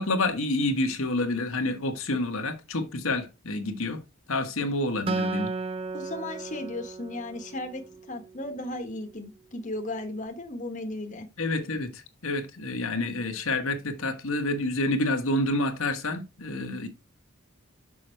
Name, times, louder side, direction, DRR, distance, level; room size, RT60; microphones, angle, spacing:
voice 1, 0.0-4.0 4.3-5.5 11.4-16.9, left 2 dB, 85° left, 1.4 m, -28 dB
Acoustic guitar, 5.1-8.5, right 3 dB, 25° right, 0.5 m, -34 dB
voice 2, 5.9-11.3, left 1 dB, 35° left, 1.2 m, -36 dB
6.2 x 5.7 x 4.4 m
head